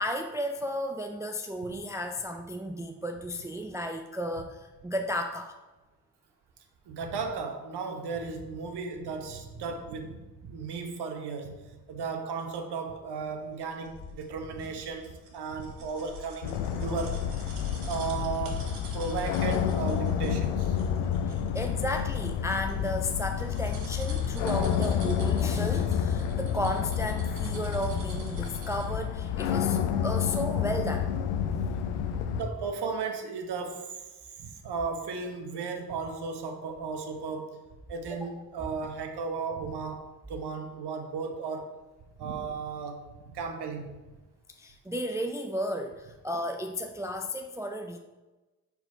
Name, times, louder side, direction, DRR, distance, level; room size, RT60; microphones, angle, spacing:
voice 1, 0.0-5.5 21.3-31.1 31.4-31.9 32.3-32.4 38.1-38.3 44.6-48.0, equal, 5° right, 4 dB, 0.4 m, -34 dB
voice 2, 6.9-11.6 11.9-17.3 17.9-20.8 32.3-34.0 34.4-37.6 37.9-41.7 42.2-44.0, right 5 dB, 50° right, 5 dB, 1.1 m, -35 dB
sound 1, 13.4-17.4 17.7-18.5 19.0-21.9 22.2-27.7 28.1-28.5 29.0-31.8, left 5 dB, 45° left, 1.6 m, -50 dB
sound 2, 13.8-29.0 29.4-29.5, right 3 dB, 75° right, 1.2 m, -49 dB
sound 3, 16.4-32.4, left 8 dB, 65° left, 0.7 m, -29 dB
4.4 x 4.1 x 5.5 m, 1.1 s
hypercardioid pair, 40°, 50 cm